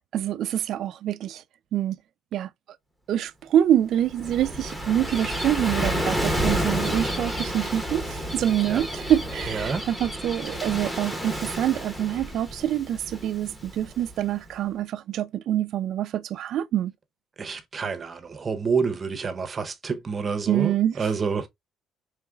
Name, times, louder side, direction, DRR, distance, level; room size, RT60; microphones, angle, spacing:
voice 1, 0.1-1.4 1.7-2.0 2.3-2.5 3.1-16.9 20.5-21.1, right 11 dB, 60° right, 0.3 m, -26 dB
Gull seagull / Waves surf, 3.9-14.4, equal, 5° left, 0.9 m, -30 dB
voice 2, 9.5-9.8 17.4-21.5, right 5 dB, 25° right, 0.6 m, -28 dB
4.8 x 3.1 x 2.2 m
cardioid pair, 135°, 0 cm